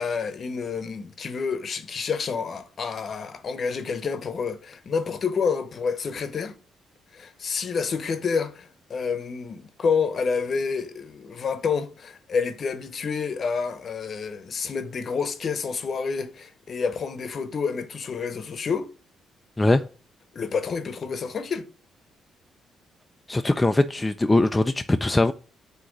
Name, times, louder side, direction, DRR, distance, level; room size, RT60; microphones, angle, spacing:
voice 1, 0.0-6.6 7.1-18.9 20.3-21.7, left 5 dB, 50° left, 0.8 m, -28 dB
voice 2, 23.3-25.3, left 2 dB, 15° left, 0.4 m, -21 dB
7.9 x 2.9 x 6.1 m
cardioid pair, 90°, 0 cm